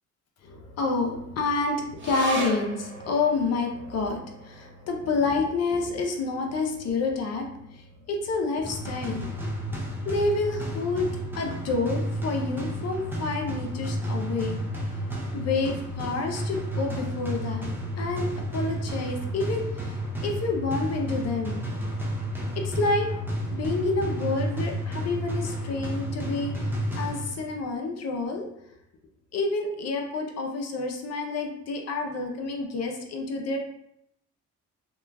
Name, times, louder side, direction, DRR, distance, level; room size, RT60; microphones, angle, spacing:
voice 1, 0.4-9.3 10.0-14.6 15.3-18.3 18.5-20.0 20.2-21.6 22.6-23.1 23.5-28.5 29.3-33.6, left 3 dB, 55° left, 2 dB, 0.6 m, -29 dB
sound 1, 2.0-8.7 9.1-9.2 9.5-10.2 10.7-10.8, right 2 dB, 40° right, 0.9 m, -39 dB
sound 2, 8.6-27.6, equal, 5° right, 0.5 m, -31 dB
2.9 x 2.3 x 2.2 m, 0.78 s
cardioid pair, 90°, 30 cm